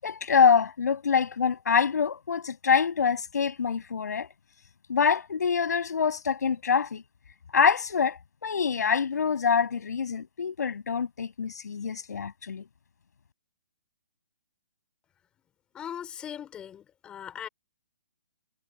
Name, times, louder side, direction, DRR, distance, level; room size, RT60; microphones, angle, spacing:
voice 1, 0.0-4.3 4.9-7.0 7.5-12.7, left 6 dB, 70° left, 7.8 m, -25 dB
voice 2, 15.7-17.5, left 9 dB, 10° left, 4.7 m, -39 dB
hypercardioid pair, 175°, 9 cm